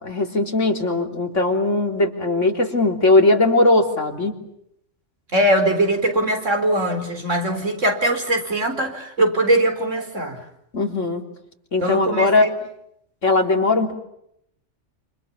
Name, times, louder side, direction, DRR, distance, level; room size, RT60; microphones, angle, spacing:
voice 1, 0.0-4.3 10.7-11.2 11.7-12.5 13.2-13.9, left 2 dB, 80° left, 3 dB, 3.9 m, -19 dB
voice 2, 5.3-10.4 11.8-12.5, right 1 dB, 85° right, 6 dB, 4.8 m, -21 dB
28.5 x 27.5 x 7.2 m, 0.76 s
omnidirectional pair, 1.2 m